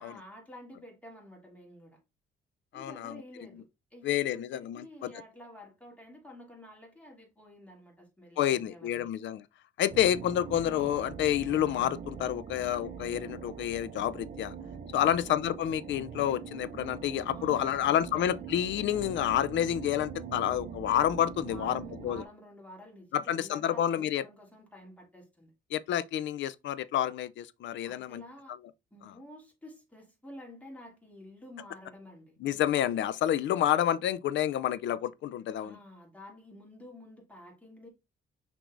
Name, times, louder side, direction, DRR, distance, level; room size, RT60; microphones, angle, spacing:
voice 1, 0.0-2.0 2.7-3.6 3.9-9.1 17.3-18.5 21.4-25.5 27.8-28.6 28.9-32.4 35.6-37.9, left 1 dB, 5° left, 2.5 m, -50 dB
voice 2, 2.7-3.2 4.0-5.1 8.4-9.4 9.8-14.5 14.9-22.2 23.1-24.2 25.7-28.2 29.0-29.1 32.4-35.8, left 11 dB, 70° left, 0.5 m, -29 dB
sound 1, 9.9-22.3, right 6 dB, 40° right, 0.5 m, -43 dB
5.9 x 3.4 x 2.5 m
cardioid pair, 90°, 20 cm